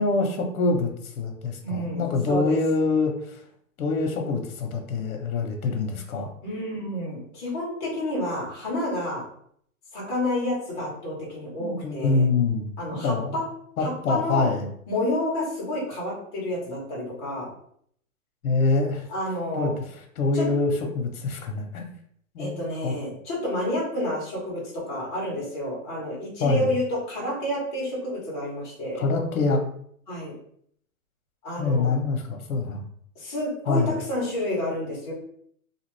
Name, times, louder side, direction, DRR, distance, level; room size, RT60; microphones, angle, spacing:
voice 1, 0.0-3.4 3.8-6.3 11.6-12.7 13.0-13.4 13.8-14.7 18.4-19.1 19.6-21.9 22.3-22.9 26.4-26.7 29.0-29.6 31.6-32.8 33.7-33.9, left 3 dB, 85° left, 3 dB, 0.8 m, -25 dB
voice 2, 1.6-2.6 6.4-9.2 9.9-12.3 12.8-13.4 13.8-14.5 14.9-17.5 19.1-19.7 20.3-20.5 22.4-29.0 30.1-30.3 31.4-32.0 33.1-35.1, left 1 dB, 20° left, -5 dB, 0.9 m, -29 dB
2.8 x 2.4 x 3.1 m, 0.65 s
hypercardioid pair, 170°, 42 cm